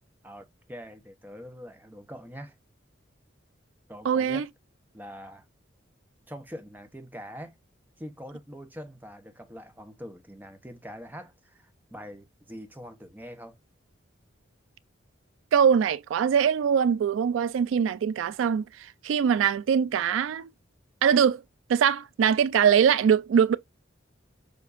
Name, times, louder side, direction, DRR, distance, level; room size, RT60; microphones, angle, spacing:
voice 1, 0.2-2.6 3.9-4.5 4.9-5.5 6.3-7.6 8.0-13.6, equal, 10° right, 0.8 m, -43 dB
voice 2, 4.1-4.4 15.5-18.6 19.0-20.5 21.0-21.4 21.7-23.6, right 7 dB, 85° right, 0.3 m, -22 dB
6.9 x 2.6 x 2.5 m
head